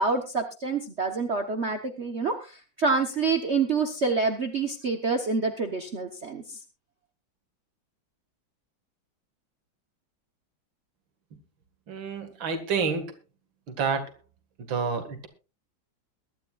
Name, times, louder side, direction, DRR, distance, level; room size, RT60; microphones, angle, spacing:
voice 1, 0.0-6.6, right 4 dB, 40° right, 5 dB, 1.2 m, -27 dB
voice 2, 11.9-13.1 13.8-14.1 14.7-15.3, right 5 dB, 75° right, 7 dB, 2.6 m, -28 dB
22.5 x 12.0 x 2.4 m, 0.30 s
omnidirectional pair, 2.1 m